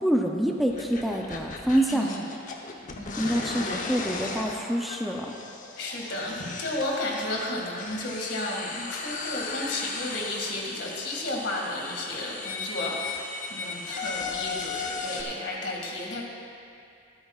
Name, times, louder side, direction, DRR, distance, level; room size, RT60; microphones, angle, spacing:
voice 1, 0.0-2.1 3.2-5.3, right 1 dB, ahead, 0 dB, 0.5 m, -26 dB
sound 1, 0.7-15.2, left 4 dB, 45° left, 0.9 m, -36 dB
voice 2, 3.2-3.9 5.8-16.2, left 1 dB, 70° left, -1 dB, 2.1 m, -33 dB
23.5 x 8.9 x 2.4 m, 2.4 s
head